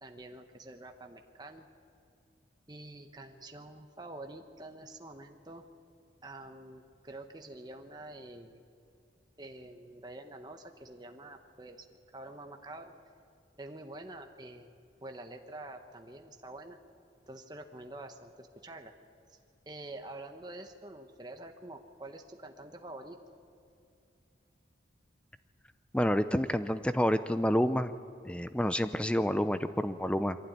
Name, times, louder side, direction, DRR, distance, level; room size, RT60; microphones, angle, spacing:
voice 1, 0.0-1.7 2.7-5.6 6.2-8.6 9.4-12.9 13.6-14.7 15.0-16.8 17.3-18.9 19.3-19.4 19.7-23.2, right 2 dB, 20° right, 4 dB, 1.1 m, -47 dB
voice 2, 25.9-27.9 28.2-30.4, equal, 5° left, 11 dB, 0.6 m, -28 dB
23.5 x 16.0 x 9.3 m, 2.6 s
head